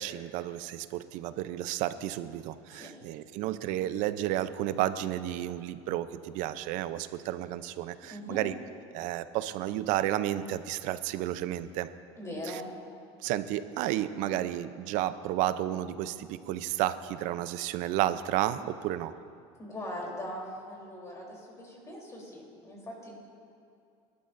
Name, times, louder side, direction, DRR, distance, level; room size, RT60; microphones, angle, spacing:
voice 1, 0.0-8.5 8.9-11.9 12.5-12.6 13.2-19.1, right 13 dB, 70° right, 13 dB, 0.6 m, -32 dB
voice 2, 8.1-8.4 12.2-12.7 19.6-23.1, equal, 20° left, -2 dB, 3.4 m, -40 dB
21.0 x 12.0 x 2.6 m, 2.6 s
cardioid pair, 125°, 13 cm